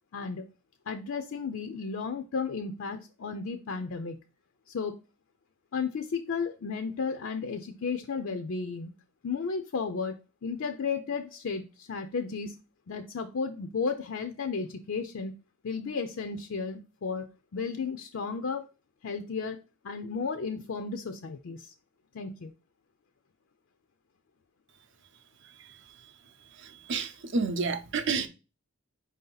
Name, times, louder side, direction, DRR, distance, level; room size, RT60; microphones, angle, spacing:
voice 1, 0.1-0.4 0.9-4.2 4.7-5.0 5.7-8.9 9.2-12.5 12.9-15.3 15.6-18.7 19.0-21.7 22.1-22.5, left 5 dB, 60° left, 0.4 m, -34 dB
voice 2, 26.9-28.3, right 4 dB, 55° right, 0.6 m, -29 dB
4.8 x 2.7 x 3.8 m
head